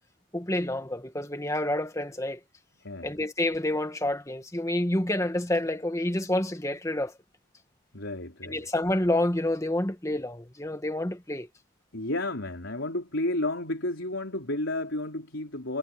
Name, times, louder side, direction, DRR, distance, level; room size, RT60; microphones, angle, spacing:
voice 1, 0.3-2.4 3.0-7.1 8.4-11.5, left 1 dB, 15° left, 1.6 m, -28 dB
voice 2, 2.8-3.1 7.9-8.7 11.9-15.8, left 1 dB, 70° left, 4.0 m, -32 dB
head